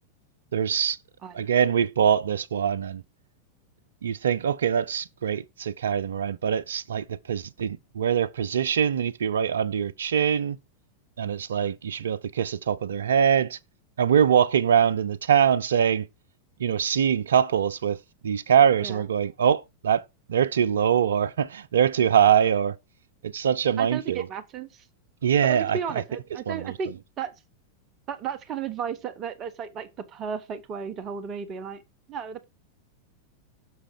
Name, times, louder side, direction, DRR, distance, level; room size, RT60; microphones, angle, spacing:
voice 1, 0.5-1.0 1.3-3.0 4.0-10.6 11.2-13.6 14.0-16.1 16.6-22.8 23.2-24.3 25.2-26.0 26.5-26.8, right 8 dB, 65° right, 0.5 m, -23 dB
voice 2, 23.8-24.8 25.4-27.3 28.1-31.8 32.1-32.4, right 7 dB, 30° right, 1.1 m, -34 dB
6.8 x 4.9 x 4.5 m
figure-of-eight pair, 90°, 0 cm